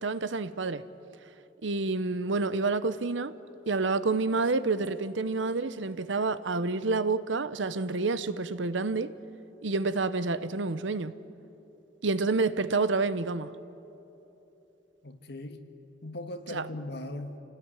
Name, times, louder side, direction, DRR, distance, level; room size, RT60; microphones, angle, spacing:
voice 1, 0.0-0.8 1.6-3.3 3.7-9.1 9.6-11.1 12.0-13.5 16.5-16.7, right 3 dB, 80° right, 0.9 m, -28 dB
voice 2, 15.0-15.6 16.0-17.4, left 1 dB, 60° left, 1.8 m, -39 dB
28.0 x 17.5 x 9.8 m
head